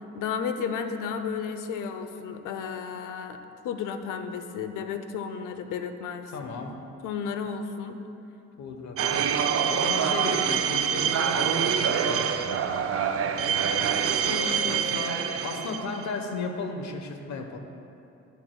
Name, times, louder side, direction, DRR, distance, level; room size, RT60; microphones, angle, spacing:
voice 1, 0.1-6.3 7.0-8.0 14.2-15.1 15.6-15.8, left 6 dB, 85° left, 8 dB, 0.7 m, -33 dB
voice 2, 6.3-6.8 8.6-12.3 14.6-17.6, left 4 dB, 65° left, 4 dB, 1.2 m, -35 dB
sound 1, 9.0-16.2, right 7 dB, 50° right, 0.6 m, -26 dB
14.0 x 10.0 x 2.3 m, 2.8 s
cardioid pair, 90°, 30 cm